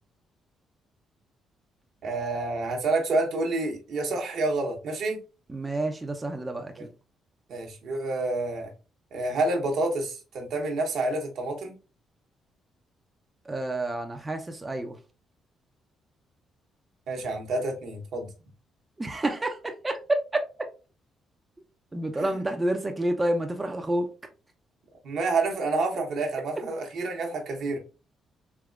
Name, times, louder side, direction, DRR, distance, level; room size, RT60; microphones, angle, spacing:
voice 1, 2.0-5.2 7.5-8.7 9.1-11.8 17.1-18.3 22.2-22.3 25.0-27.8, right 2 dB, 70° right, 0.9 m, -28 dB
voice 2, 5.5-6.9 13.5-15.0 19.0-20.2 21.9-24.1, right 1 dB, 20° right, 0.5 m, -29 dB
3.5 x 2.9 x 2.3 m
cardioid pair, 90°, 0 cm